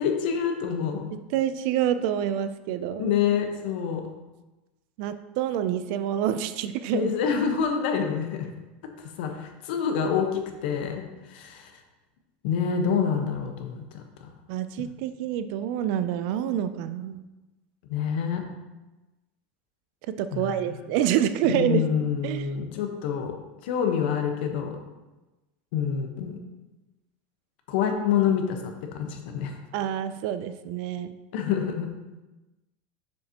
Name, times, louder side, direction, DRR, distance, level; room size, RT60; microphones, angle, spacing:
voice 1, 0.0-1.1 3.0-4.0 6.9-8.5 9.0-11.0 11.3-11.7 12.4-14.3 14.8-14.9 17.9-18.4 20.3-20.7 21.5-23.3 23.6-24.8 25.7-26.3 27.7-29.6 31.3-31.9, left 7 dB, 65° left, 4 dB, 1.1 m, -27 dB
voice 2, 1.1-3.1 5.0-7.1 14.5-17.2 20.1-21.8 22.2-22.5 29.7-31.1, right 10 dB, 50° right, 11 dB, 0.4 m, -27 dB
7.2 x 6.6 x 2.9 m, 1.1 s
supercardioid pair, 165°, 6 cm